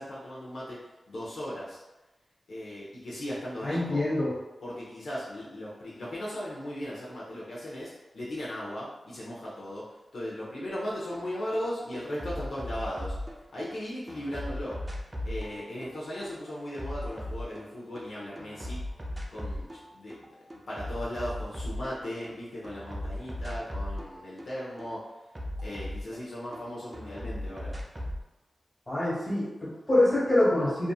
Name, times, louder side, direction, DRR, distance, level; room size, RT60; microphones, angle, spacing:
voice 1, 0.0-1.8 2.5-4.1 4.6-13.2 13.5-14.9 15.2-18.8 19.3-20.2 20.7-25.1 25.6-27.8, equal, 80° left, -7 dB, 0.6 m, -37 dB
voice 2, 3.6-4.3 28.9-30.9, left 1 dB, 30° left, -9 dB, 1.4 m, -25 dB
sound 1, 11.1-11.3 11.5-13.7 14.1-18.1 18.4-19.8 20.1-22.3 22.6-26.6 26.9-28.2, left 1 dB, 25° right, 0.4 m, -37 dB
2.6 x 2.5 x 2.3 m, 1.0 s
wide cardioid pair, 85°, 0 cm